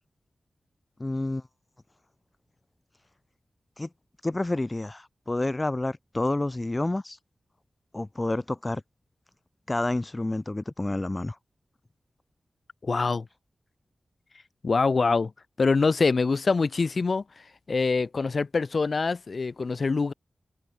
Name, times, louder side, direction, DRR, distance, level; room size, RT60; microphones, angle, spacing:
voice 1, 1.0-1.4 3.8-3.9 4.2-7.2 7.9-8.8 9.7-11.4, left 2 dB, 25° left, 0.9 m, -29 dB
voice 2, 12.8-13.3 14.6-15.3 15.6-17.2 17.7-20.1, left 4 dB, 60° left, 0.4 m, -24 dB
open air
wide cardioid pair, 65°, 0 cm